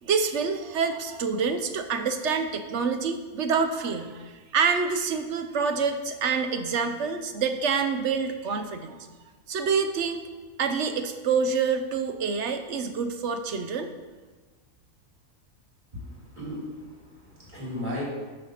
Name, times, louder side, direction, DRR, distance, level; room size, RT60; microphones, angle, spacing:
voice 1, 0.0-9.0 9.5-10.2 10.6-13.9, right 5 dB, 60° right, 7 dB, 0.9 m, -27 dB
voice 2, 15.9-18.0, left 1 dB, 30° right, -7 dB, 3.4 m, -36 dB
9.5 x 4.8 x 6.4 m, 1.3 s
omnidirectional pair, 1.5 m